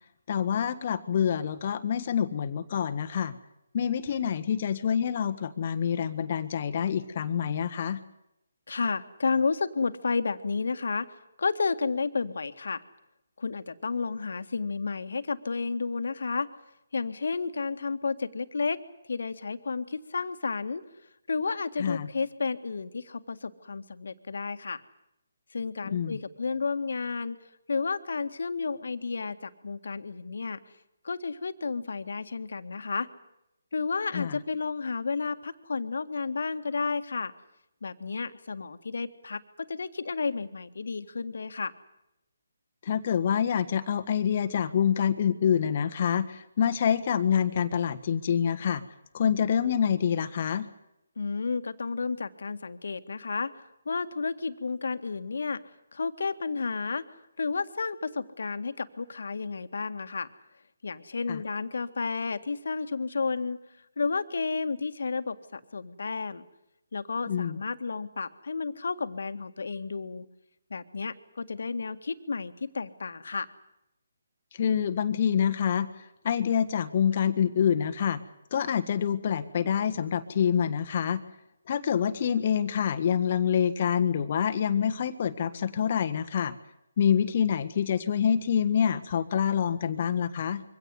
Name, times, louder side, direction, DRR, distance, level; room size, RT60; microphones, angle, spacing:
voice 1, 0.3-3.3 3.7-8.0 21.8-22.1 25.9-26.2 34.1-34.4 42.8-48.8 49.1-50.7 61.3-61.4 67.3-67.6 74.5-75.9 76.2-78.2 78.5-81.2 81.7-86.5 87.0-90.6, left 8 dB, 45° left, 9 dB, 1.6 m, -26 dB
voice 2, 8.7-12.8 13.4-16.5 16.9-18.8 19.1-20.8 21.3-24.8 25.5-27.4 27.7-30.6 31.0-33.1 33.7-37.3 37.8-41.7 51.2-55.6 55.9-57.1 57.4-60.3 60.8-63.6 64.0-66.5 66.9-70.3 70.7-73.5, left 4 dB, 70° left, 10 dB, 1.9 m, -32 dB
24.0 x 17.5 x 9.6 m, 0.86 s
figure-of-eight pair, 150°, 0 cm